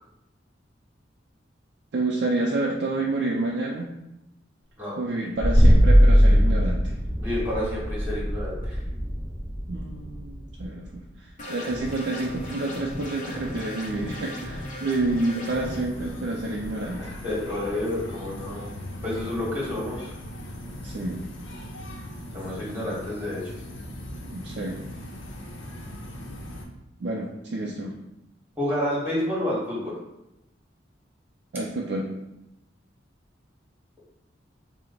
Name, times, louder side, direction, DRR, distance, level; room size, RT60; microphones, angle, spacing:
voice 1, 1.9-3.9 5.0-6.8 9.7-17.1 20.8-21.3 24.3-24.8 27.0-27.9 31.5-32.1, right 2 dB, 60° right, -2 dB, 0.4 m, -29 dB
sound 1, 5.4-11.0, equal, 20° left, 1.0 m, -20 dB
voice 2, 7.2-8.8 13.2-13.5 17.0-18.6 19.0-20.1 22.3-23.5 28.6-29.9, left 1 dB, 10° right, -6 dB, 1.1 m, -29 dB
sound 2, 11.4-15.8, left 1 dB, 40° left, 0.8 m, -36 dB
sound 3, 15.5-26.6, left 1 dB, 80° left, 0.7 m, -39 dB
4.3 x 2.0 x 3.8 m, 0.91 s
head